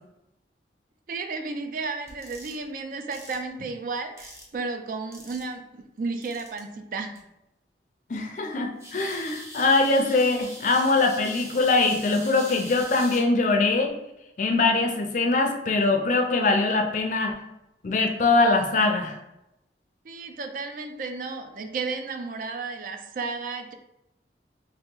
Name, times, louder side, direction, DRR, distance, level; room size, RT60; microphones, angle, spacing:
voice 1, 1.1-7.2 20.0-23.7, right 4 dB, 50° right, 7 dB, 0.3 m, -33 dB
sound 1, 2.1-2.6 3.1-3.3 4.2-4.5 5.1-5.5 6.2-6.6 7.1-7.2 8.8-13.2, equal, 15° right, 0.7 m, -42 dB
voice 2, 8.1-13.9 14.4-17.4 17.8-19.2, left 3 dB, 45° left, 4 dB, 0.4 m, -22 dB
3.1 x 2.8 x 3.7 m, 0.89 s
head